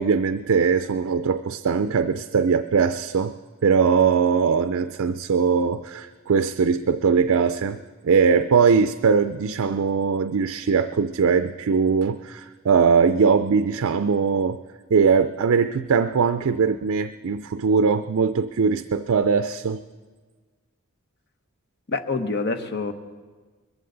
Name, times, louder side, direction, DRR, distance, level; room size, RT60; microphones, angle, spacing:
voice 1, 0.0-3.4 3.6-14.6 14.9-19.8, right 5 dB, 70° right, 10 dB, 0.4 m, -21 dB
voice 2, 21.9-22.9, left 3 dB, 50° left, 9 dB, 0.9 m, -26 dB
21.5 x 14.5 x 3.9 m, 1.4 s
head